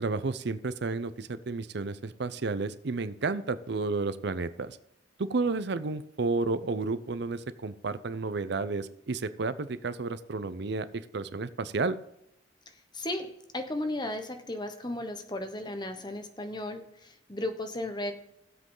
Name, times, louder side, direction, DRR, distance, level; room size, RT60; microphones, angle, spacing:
voice 1, 0.0-4.8 5.2-12.0, right 3 dB, 65° right, 13 dB, 0.6 m, -31 dB
voice 2, 12.9-18.1, left 1 dB, 25° left, 7 dB, 1.1 m, -35 dB
16.5 x 7.6 x 3.9 m, 0.81 s
head